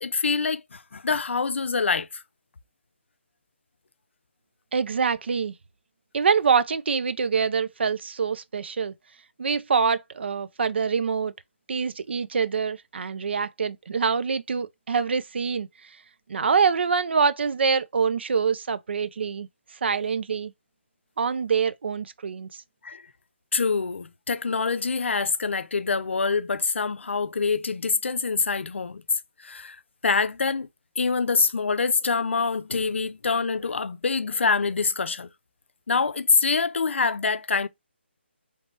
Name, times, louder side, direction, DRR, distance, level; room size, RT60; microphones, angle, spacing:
voice 1, 0.0-2.2 22.8-23.0 23.5-29.0 29.4-29.8 30.0-30.7 31.0-35.3 35.9-37.7, left 4 dB, 75° left, 0.4 m, -25 dB
voice 2, 4.7-5.5 6.1-8.9 9.4-11.3 11.7-15.7 16.3-19.5 19.8-20.5 21.2-22.6, right 6 dB, 65° right, 0.4 m, -25 dB
3.3 x 2.9 x 3.0 m
figure-of-eight pair, 150°, 6 cm